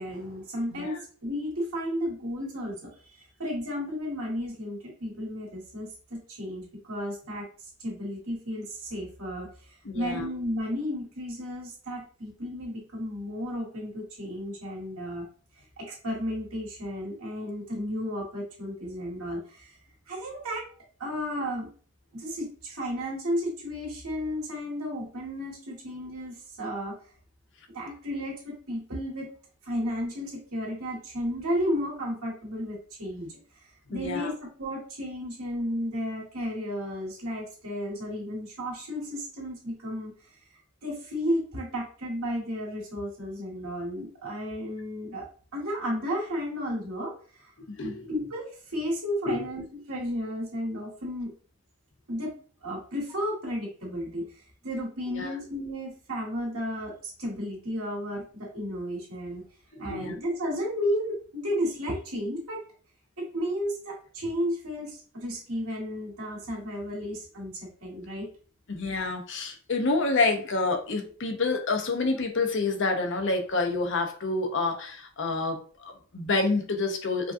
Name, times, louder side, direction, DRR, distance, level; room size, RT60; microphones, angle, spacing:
voice 1, 0.0-2.9 3.4-7.5 7.8-9.5 9.9-15.2 15.8-19.7 20.1-20.7 21.0-21.7 22.1-27.0 27.7-29.3 29.6-33.3 33.9-40.1 40.8-45.2 45.5-47.5 48.1-51.3 52.1-52.3 52.6-54.3 54.6-59.4 59.8-62.6 63.2-68.3, equal, 90° right, -4 dB, 1.9 m, -33 dB
voice 2, 0.7-1.0 9.8-10.3 33.9-34.3 47.7-48.1 49.3-49.4 55.1-55.3 59.7-60.2 68.7-77.3, left 3 dB, 60° left, 4 dB, 0.7 m, -28 dB
5.1 x 2.4 x 2.6 m, 0.42 s
head